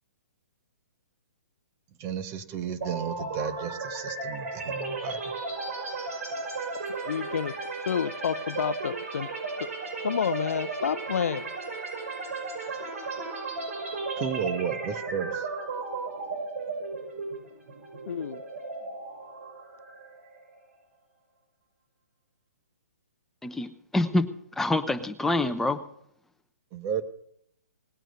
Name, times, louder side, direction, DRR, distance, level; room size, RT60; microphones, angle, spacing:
voice 1, 2.0-5.3 14.2-15.4 26.7-27.0, right 8 dB, 25° right, 10 dB, 1.3 m, -33 dB
sound 1, 2.8-20.6, right 3 dB, 65° right, 5.9 m, -35 dB
voice 2, 7.0-7.6 7.9-9.3 9.6-9.7 10.0-11.6 18.1-18.4, left 8 dB, 70° left, 18 dB, 0.6 m, -29 dB
voice 3, 23.4-24.3 24.6-25.8, left 2 dB, 5° left, 8 dB, 0.9 m, -26 dB
19.0 x 9.0 x 6.7 m, 0.70 s
hypercardioid pair, 140°, 8 cm